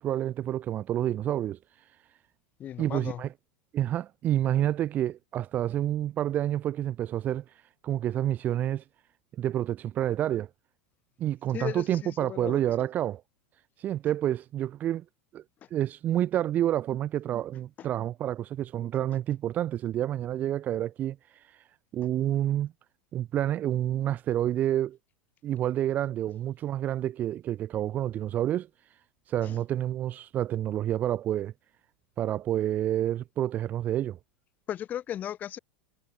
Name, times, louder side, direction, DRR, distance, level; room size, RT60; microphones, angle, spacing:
voice 1, 0.0-1.6 2.8-3.3 3.7-7.4 7.8-8.8 9.4-10.5 11.2-13.2 13.8-15.0 15.3-15.4 15.7-21.2 21.9-22.7 23.1-25.0 25.4-28.7 29.3-31.5 32.2-34.2, right 12 dB, 35° right, 0.5 m, -28 dB
voice 2, 2.6-3.2 11.5-12.6 17.8-17.9 29.4-29.6 34.7-35.6, left 10 dB, 35° left, 1.5 m, -36 dB
figure-of-eight pair, 85°, 5 cm